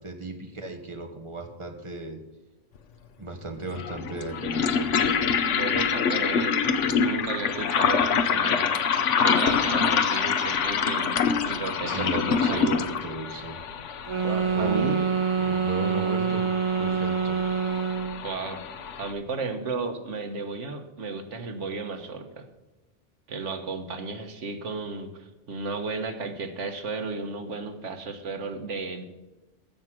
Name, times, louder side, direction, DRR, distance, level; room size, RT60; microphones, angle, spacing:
voice 1, 0.0-2.2 3.2-5.2 11.9-13.6 14.5-15.0 15.4-16.4 16.8-17.4, right 2 dB, 25° right, 3 dB, 1.6 m, -36 dB
sound 1, 2.8-2.9 3.7-19.1, left 6 dB, 85° left, 1.2 m, -26 dB
voice 2, 5.5-12.9 14.2-15.0 18.2-18.6 19.0-22.5 23.3-29.0, right 4 dB, 80° right, 7 dB, 1.6 m, -34 dB
sound 2, 14.1-18.3, right 6 dB, 40° right, 0.4 m, -26 dB
14.5 x 6.3 x 5.9 m, 1.1 s
omnidirectional pair, 1.2 m